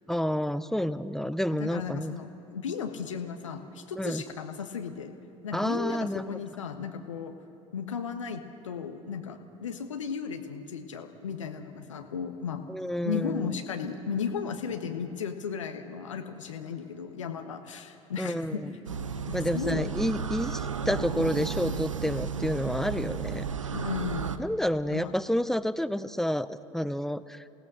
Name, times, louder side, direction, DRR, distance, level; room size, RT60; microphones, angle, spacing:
voice 1, 0.1-2.2 4.0-4.2 5.5-6.4 12.7-13.5 18.2-18.7 19.3-23.5 24.4-27.4, equal, ahead, 15 dB, 0.6 m, -29 dB
voice 2, 1.6-5.1 5.4-7.3 7.7-12.7 13.0-18.8 19.2-19.9 23.7-24.3 24.9-25.1, left 6 dB, 75° left, 6 dB, 1.3 m, -35 dB
sound 1, 18.8-24.4, right 6 dB, 80° right, 0.7 m, -33 dB
28.5 x 18.0 x 6.5 m, 2.8 s
figure-of-eight pair, 65°, 16 cm